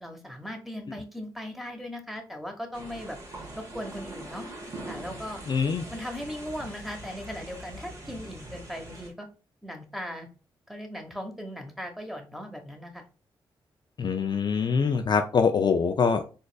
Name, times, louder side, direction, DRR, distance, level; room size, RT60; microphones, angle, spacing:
voice 1, 0.0-3.2 3.5-4.5 4.9-5.4 5.9-9.3 9.6-10.3 10.7-13.0, equal, ahead, 1.0 m, -38 dB
sound 1, 2.7-9.1, right 1 dB, 30° right, 1.4 m, -42 dB
voice 2, 5.5-5.8 14.0-16.3, left 5 dB, 45° left, 0.4 m, -24 dB
3.9 x 2.4 x 2.2 m
supercardioid pair, 45°, 10 cm